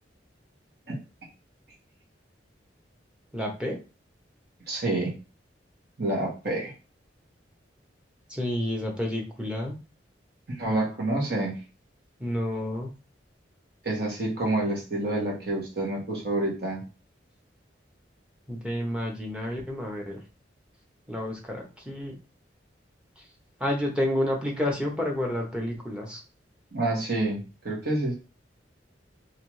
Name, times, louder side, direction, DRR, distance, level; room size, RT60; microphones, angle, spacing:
voice 1, 3.3-3.8 8.3-9.8 12.2-12.9 18.5-20.2 21.1-22.2 23.6-26.2, left 1 dB, 5° right, -1 dB, 0.8 m, -30 dB
voice 2, 4.7-5.1 6.0-6.7 10.5-11.6 13.8-16.8 26.7-28.1, right 2 dB, 60° right, -3 dB, 1.4 m, -28 dB
3.3 x 2.8 x 3.1 m, 0.32 s
head